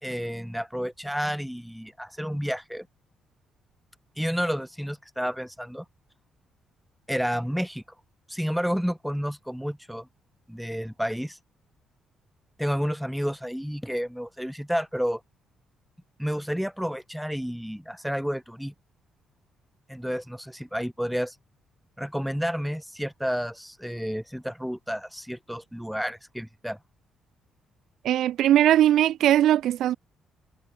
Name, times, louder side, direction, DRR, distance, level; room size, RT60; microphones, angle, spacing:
voice 1, 0.0-2.9 4.2-5.8 7.1-7.8 8.3-10.1 10.5-11.4 12.6-15.2 16.2-18.7 19.9-21.4 22.0-26.8, equal, ahead, 4.2 m, -30 dB
voice 2, 28.0-30.0, right 12 dB, 75° right, 1.6 m, -20 dB
cardioid pair, 90°, 0 cm